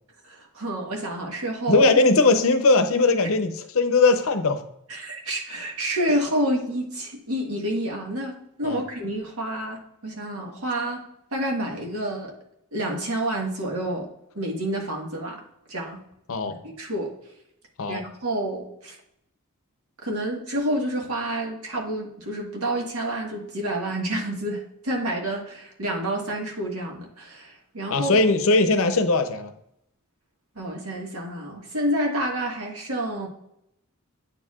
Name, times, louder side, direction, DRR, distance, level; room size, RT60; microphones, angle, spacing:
voice 1, 0.2-1.9 4.9-11.0 11.3-12.3 12.7-14.1 14.3-15.4 15.7-16.0 16.4-17.1 17.9-19.0 20.0-28.2 30.5-33.3, right 1 dB, 80° right, 0 dB, 1.6 m, -29 dB
voice 2, 1.7-4.6 6.1-6.2 8.6-8.8 16.3-16.5 17.8-18.0 27.9-29.5, left 3 dB, 65° left, 9 dB, 0.7 m, -20 dB
8.8 x 4.6 x 2.4 m, 0.77 s
head